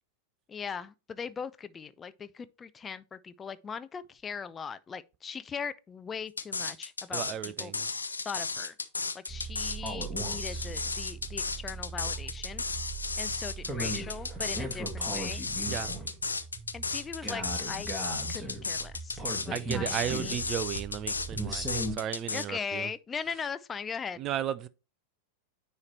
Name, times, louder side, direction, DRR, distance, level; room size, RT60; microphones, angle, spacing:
voice 1, 0.5-7.7 8.2-8.8 9.1-12.6 13.2-15.4 16.7-17.9 18.3-20.4 22.3-24.2, left 6 dB, 20° left, 0.5 m, -40 dB
sound 1, 6.4-22.4, left 4 dB, 80° left, 0.5 m, -34 dB
voice 2, 7.1-7.9 15.7-15.9 19.5-22.9 24.2-24.7, right 11 dB, 35° right, 0.5 m, -34 dB
sound 2, 9.3-21.9, right 2 dB, 5° right, 1.8 m, -38 dB
9.5 x 3.2 x 4.2 m
figure-of-eight pair, 90°, 0 cm